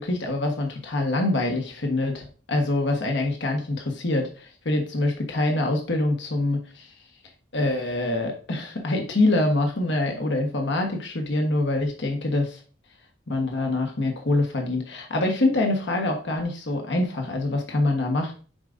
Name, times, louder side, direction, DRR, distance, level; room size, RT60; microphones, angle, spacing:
voice 1, 0.0-6.9 7.5-12.6 13.3-18.3, left 2 dB, 65° left, 2 dB, 1.3 m, -25 dB
10.0 x 4.9 x 2.6 m, 0.38 s
head